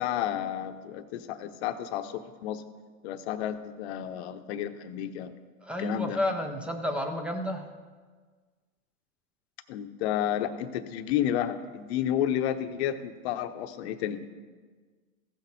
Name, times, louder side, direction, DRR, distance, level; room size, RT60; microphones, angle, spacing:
voice 1, 0.0-2.6 3.0-5.3 5.8-6.2 9.7-14.2, left 10 dB, 50° left, 9 dB, 0.8 m, -31 dB
voice 2, 5.6-7.7, left 1 dB, 5° right, 4 dB, 0.4 m, -31 dB
15.5 x 6.3 x 4.1 m, 1.5 s
hypercardioid pair, 135°, 41 cm